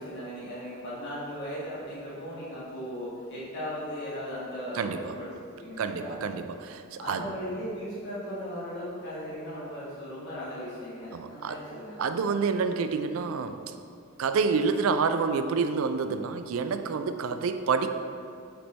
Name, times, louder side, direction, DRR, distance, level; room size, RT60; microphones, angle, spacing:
voice 1, 0.0-5.3 5.6-6.2 7.0-12.0, equal, 55° left, -9 dB, 1.5 m, -37 dB
voice 2, 4.7-5.1 5.8-7.2 11.1-11.6 12.0-13.7 14.2-17.9, right 5 dB, 80° right, 9 dB, 0.4 m, -28 dB
7.9 x 3.3 x 4.3 m, 2.4 s
head